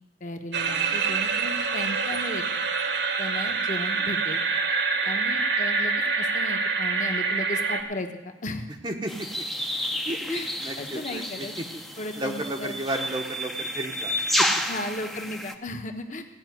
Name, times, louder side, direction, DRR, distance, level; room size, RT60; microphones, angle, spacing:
voice 1, 0.2-2.4 3.2-4.4 5.0-8.7 10.3-10.5 10.8-11.5 12.0-12.7 14.7-16.2, left 1 dB, 45° left, 5 dB, 1.2 m, -35 dB
sound 1, 0.5-7.8, right 4 dB, 70° right, 1.4 m, -26 dB
voice 2, 8.8-9.4 10.0-11.7 12.2-14.5, right 1 dB, 25° right, 1 dB, 0.8 m, -33 dB
sound 2, 9.1-15.5, equal, ahead, 0.6 m, -30 dB
16.0 x 5.7 x 9.3 m, 1.0 s
head